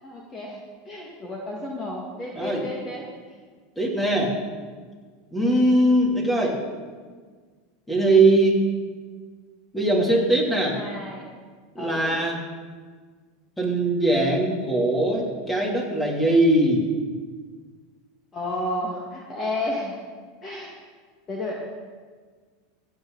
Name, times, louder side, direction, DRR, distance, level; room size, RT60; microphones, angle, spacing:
voice 1, 0.0-3.0 5.4-5.7 10.7-11.2 11.8-12.2 18.3-19.9 20.4-20.7 21.3-21.6, left 1 dB, 30° left, -2 dB, 1.9 m, -32 dB
voice 2, 3.8-4.4 5.3-6.6 7.9-8.6 9.7-10.8 11.7-12.4 13.6-16.8, right 1 dB, 5° left, -2 dB, 2.9 m, -21 dB
15.5 x 8.3 x 4.0 m, 1.5 s
supercardioid pair, 115°, 0 cm